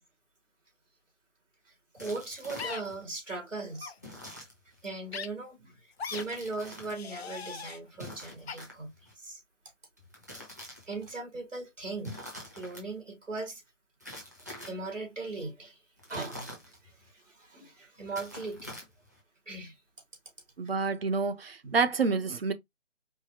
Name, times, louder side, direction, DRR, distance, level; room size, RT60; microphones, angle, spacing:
voice 1, 1.9-3.9 4.8-9.4 10.9-12.2 12.5-13.6 14.5-15.8 16.1-18.8 19.5-19.8 21.6-21.8, right 3 dB, 90° right, 2.3 m, -39 dB
sound 1, 2.0-3.0 4.0-4.9 6.0-7.0 7.9-9.1 10.0-11.1 12.0-12.8 14.0-14.9 16.0-17.1 18.0-19.2, left 1 dB, 15° right, 0.5 m, -45 dB
sound 2, 2.6-2.8 3.7-3.9 5.1-5.3 6.0-6.2 6.9-7.8 8.5-8.6, left 6 dB, 55° left, 0.6 m, -39 dB
voice 2, 20.6-22.5, right 4 dB, 55° right, 0.7 m, -28 dB
4.7 x 2.5 x 2.7 m
figure-of-eight pair, 155°, 37 cm